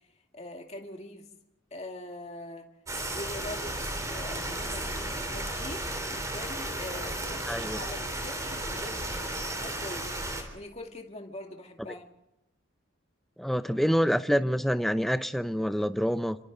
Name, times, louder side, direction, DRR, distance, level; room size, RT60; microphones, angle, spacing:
voice 1, 0.3-1.2 1.7-2.7 3.0-3.8 4.0-9.1 9.4-12.1, left 1 dB, 35° left, 2.3 m, -43 dB
sound 1, 2.9-10.4, right 1 dB, 15° right, 3.7 m, -34 dB
voice 2, 7.5-7.8 13.4-16.4, equal, ahead, 0.7 m, -26 dB
28.5 x 26.0 x 4.0 m
head